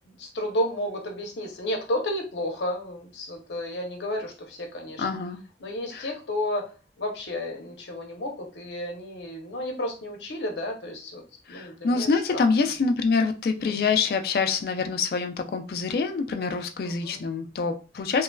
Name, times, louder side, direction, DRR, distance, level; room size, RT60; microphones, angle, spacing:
voice 1, 0.2-5.1 5.6-6.7 7.0-11.2 11.5-12.1 12.3-12.5 13.6-13.7 16.8-17.2, left 1 dB, 85° left, 2 dB, 0.7 m, -32 dB
voice 2, 5.0-5.4 5.9-6.1 11.5-18.2, left 4 dB, 55° left, 6 dB, 0.3 m, -26 dB
3.0 x 2.3 x 2.2 m, 0.35 s
head